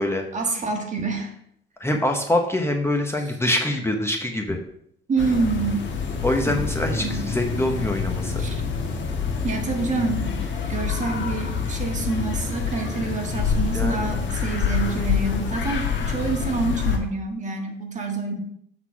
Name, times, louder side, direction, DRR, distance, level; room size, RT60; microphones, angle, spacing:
voice 1, 0.3-1.3 3.2-3.3 5.1-5.8 6.4-7.2 8.4-8.6 9.4-18.4, right 3 dB, 40° right, 2 dB, 1.5 m, -27 dB
voice 2, 1.8-4.6 6.2-8.4 13.7-14.1, left 1 dB, 10° left, 2 dB, 1.0 m, -24 dB
sound 1, 5.2-17.0, left 6 dB, 70° left, 1.4 m, -26 dB
8.1 x 4.0 x 4.7 m, 0.71 s
cardioid pair, 90°, 20 cm